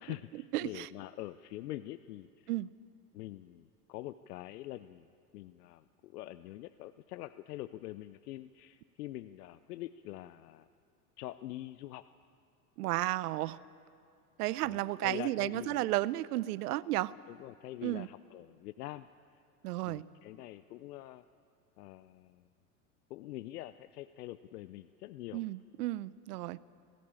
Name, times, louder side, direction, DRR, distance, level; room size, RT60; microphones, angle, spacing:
voice 1, 0.0-2.5 3.1-5.1 5.3-10.7 11.2-12.1 14.6-16.0 17.3-19.1 19.9-21.2 21.8-22.5 23.1-25.4, left 15 dB, 85° left, 14 dB, 0.6 m, -45 dB
voice 2, 0.5-0.9 2.5-2.7 12.8-13.6 14.4-17.1 17.8-18.1 19.6-20.0 25.3-26.6, right 17 dB, 80° right, 20 dB, 0.7 m, -33 dB
19.5 x 16.0 x 8.8 m, 2.4 s
hypercardioid pair, 95°, 46 cm